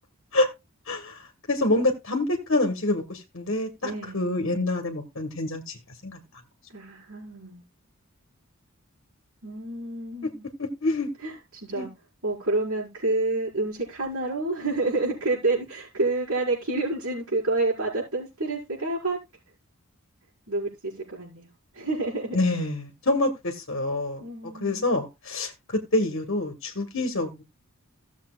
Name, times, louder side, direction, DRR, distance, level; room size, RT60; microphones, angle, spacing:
voice 1, 0.9-5.8 6.0-6.2 10.2-10.3 10.6-11.1 11.7-11.9 22.3-24.3 24.6-27.4, left 2 dB, 60° left, 1.4 m, -26 dB
voice 2, 3.8-4.2 6.7-7.6 9.4-10.4 11.2-11.9 12.2-19.2 20.5-22.4 24.2-24.9, right 2 dB, 80° right, 5.3 m, -29 dB
16.5 x 7.2 x 2.4 m
head